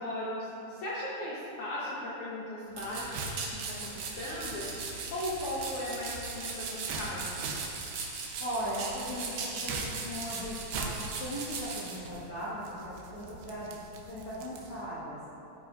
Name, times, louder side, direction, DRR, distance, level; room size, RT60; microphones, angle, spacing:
voice 1, 0.0-7.6, left 1 dB, 70° left, -7 dB, 1.8 m, -37 dB
sound 1, 2.7-14.9, right 3 dB, 75° right, 2.5 m, -43 dB
sound 2, 2.7-12.0, right 4 dB, 90° right, 1.5 m, -39 dB
voice 2, 8.4-13.8 14.1-15.2, equal, 45° left, -11 dB, 1.9 m, -38 dB
14.5 x 8.6 x 2.6 m, 2.9 s
omnidirectional pair, 5.0 m